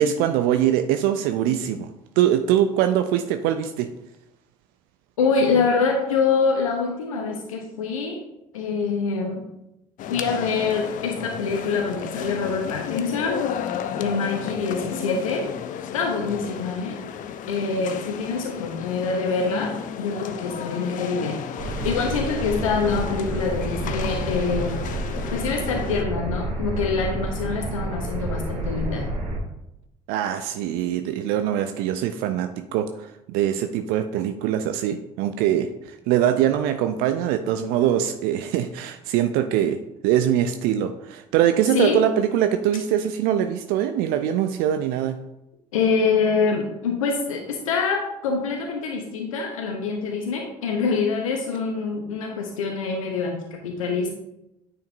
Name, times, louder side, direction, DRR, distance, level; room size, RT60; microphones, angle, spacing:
voice 1, 0.0-1.9 2.2-3.9 30.1-45.2, right 10 dB, 65° right, 8 dB, 0.4 m, -23 dB
voice 2, 5.2-8.2 8.5-9.4 10.0-13.4 13.9-15.5 15.9-17.0 17.5-21.4 21.8-24.8 25.3-29.1 41.7-42.0 45.7-54.1, left 4 dB, 80° left, 2 dB, 0.8 m, -25 dB
sound 1, 10.0-26.0, left 8 dB, 50° left, 0.6 m, -33 dB
sound 2, 21.6-29.4, right 2 dB, 35° right, 2.0 m, -29 dB
9.2 x 5.1 x 2.6 m, 0.87 s
figure-of-eight pair, 50°, 17 cm